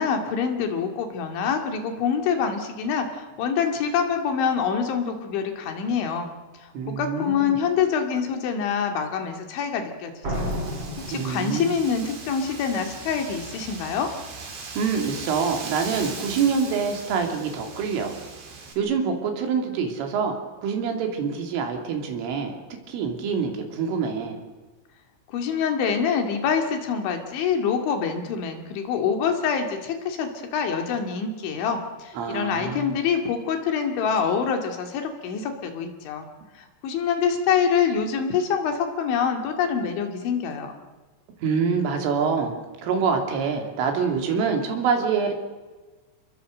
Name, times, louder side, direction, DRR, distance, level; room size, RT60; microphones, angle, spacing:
voice 1, 0.0-6.3 6.6-10.4 11.1-14.1 25.3-36.3 36.6-40.7, left 6 dB, 70° left, 5 dB, 4.6 m, -25 dB
voice 2, 6.7-7.6 11.1-11.7 14.6-18.2 18.8-20.4 20.6-22.6 22.9-24.4 32.2-33.0 41.4-45.3, right 5 dB, 80° right, 4 dB, 5.5 m, -26 dB
Slam, 10.2-12.1, equal, 30° right, 4.8 m, -31 dB
Wind, 10.3-18.7, right 4 dB, 60° right, 6.1 m, -39 dB
29.0 x 21.0 x 7.8 m, 1.2 s
omnidirectional pair, 5.7 m